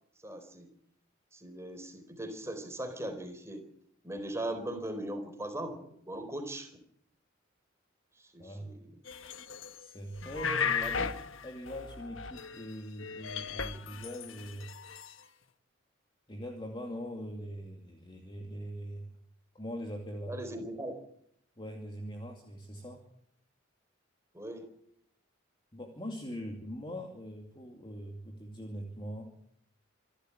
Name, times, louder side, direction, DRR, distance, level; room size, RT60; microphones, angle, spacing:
voice 1, 0.2-0.7 1.3-3.6 4.0-6.8 8.2-8.9 10.8-11.1 20.3-21.0 24.3-24.7, right 1 dB, 15° right, 7 dB, 4.2 m, -39 dB
voice 2, 8.4-8.8 9.8-11.2 11.4-14.7 16.3-19.1 19.5-20.4 21.6-23.0 25.7-29.3, equal, 25° left, 2 dB, 2.5 m, -42 dB
sound 1, 9.1-9.9 10.2-12.7 13.0-15.1, left 6 dB, 70° left, 1.3 m, -36 dB
26.5 x 12.0 x 9.8 m, 0.71 s
head